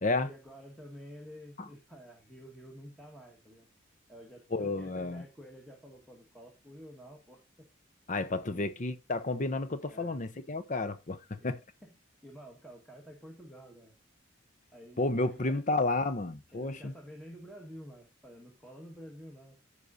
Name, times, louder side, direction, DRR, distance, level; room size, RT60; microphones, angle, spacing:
voice 1, 0.0-3.7 4.1-7.7 8.4-8.7 9.9-10.2 11.4-11.5 11.8-11.9 12.2-13.9 14.7-15.6 16.5-19.6, equal, ahead, 1.4 m, -50 dB
voice 2, 4.5-5.2 8.1-11.6 15.0-16.9, left 2 dB, 40° left, 0.6 m, -31 dB
14.5 x 4.9 x 2.6 m
head